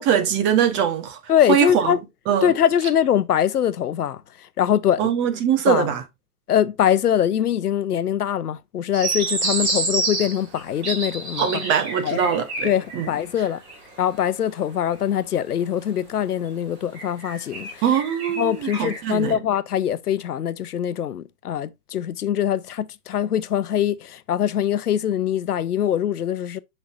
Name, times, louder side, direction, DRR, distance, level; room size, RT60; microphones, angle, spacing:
voice 1, 0.0-1.2 1.5-1.9 2.3-2.5 5.0-6.0 11.4-13.1 17.8-19.4, right 8 dB, 25° right, 1.1 m, -22 dB
voice 2, 1.3-2.0 2.4-5.1 5.7-5.9 6.5-11.6 12.0-12.3 12.6-13.6 14.0-17.8 18.4-26.6, left 10 dB, 85° left, 0.8 m, -23 dB
sound 1, 8.9-13.2 13.5-14.0 14.9-15.0 16.9-19.2, right 3 dB, 45° right, 4.7 m, -28 dB
6.9 x 5.5 x 2.5 m
hypercardioid pair, 130°, 45 cm